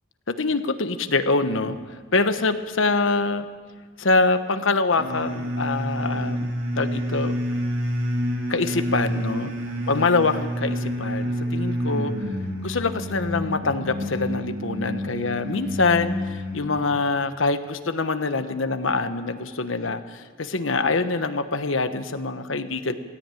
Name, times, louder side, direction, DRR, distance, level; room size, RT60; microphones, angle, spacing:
voice 1, 0.3-3.5 4.0-7.4 8.5-9.5 9.9-12.1 12.6-22.9, left 3 dB, 75° left, 10 dB, 1.1 m, -24 dB
sound 1, 5.0-16.9, equal, 75° right, 3.4 m, -28 dB
17.5 x 16.5 x 9.1 m, 1.5 s
head